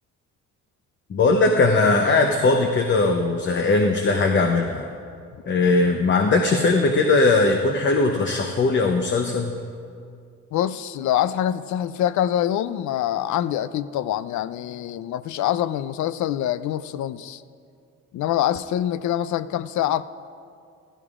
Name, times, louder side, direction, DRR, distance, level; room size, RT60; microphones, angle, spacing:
voice 1, 1.1-4.8 5.5-9.6, left 3 dB, 40° left, 3 dB, 0.8 m, -19 dB
voice 2, 10.5-17.4 18.1-20.0, left 11 dB, 70° left, 15 dB, 0.5 m, -25 dB
16.0 x 14.5 x 2.5 m, 2.3 s
cardioid pair, 90°, 30 cm